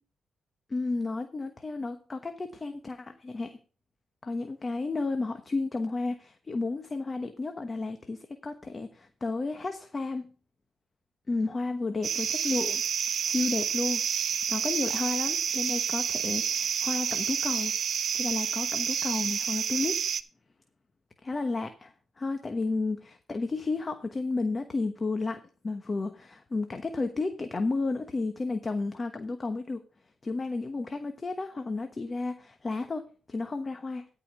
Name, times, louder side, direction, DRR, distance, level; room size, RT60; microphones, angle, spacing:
voice 1, 0.7-3.6 4.2-10.3 11.3-12.8 13.2-17.8 18.1-20.0 21.2-29.8 30.2-34.1, left 3 dB, 35° left, 8 dB, 1.1 m, -32 dB
sound 1, 12.0-20.2, right 8 dB, 65° right, 0.7 m, -29 dB
13.0 x 5.0 x 5.8 m, 0.37 s
cardioid pair, 70°, 0 cm